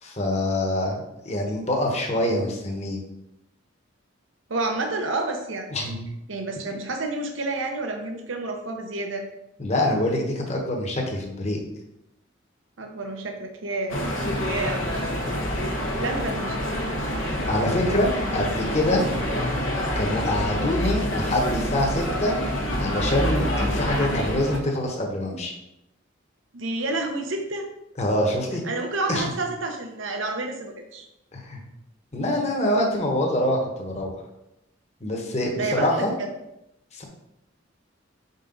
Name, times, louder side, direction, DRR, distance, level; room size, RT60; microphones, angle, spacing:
voice 1, 0.0-3.0 5.7-6.0 9.6-11.6 17.5-19.0 20.0-22.3 22.8-25.5 28.0-28.6 29.1-29.2 31.3-31.6 32.1-34.1 35.0-36.1 36.9-37.0, left 1 dB, 35° left, 0 dB, 1.1 m, -25 dB
voice 2, 4.5-5.7 6.3-9.3 12.8-14.0 14.4-15.1 16.0-16.8 26.5-27.7 28.6-31.1 35.5-36.3, right 2 dB, 80° right, 3 dB, 0.8 m, -29 dB
sound 1, 13.9-24.6, equal, 90° left, 1.2 m, -27 dB
5.4 x 5.0 x 3.9 m, 0.87 s
head